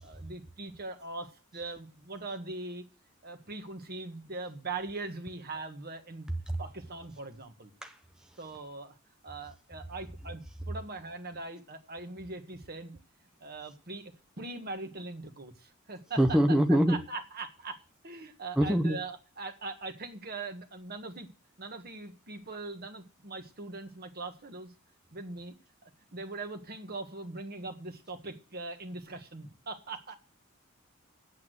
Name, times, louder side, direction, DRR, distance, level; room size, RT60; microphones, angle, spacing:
voice 1, 0.0-2.8 3.2-6.3 6.6-7.7 8.4-9.0 9.2-13.0 13.4-16.6 16.9-21.3 21.6-24.7 25.1-25.5 25.8-30.1, right 3 dB, 45° right, 6 dB, 1.5 m, -41 dB
voice 2, 16.2-17.0 18.6-19.0, equal, 5° right, 5 dB, 0.7 m, -23 dB
8.5 x 8.1 x 7.8 m, 0.38 s
head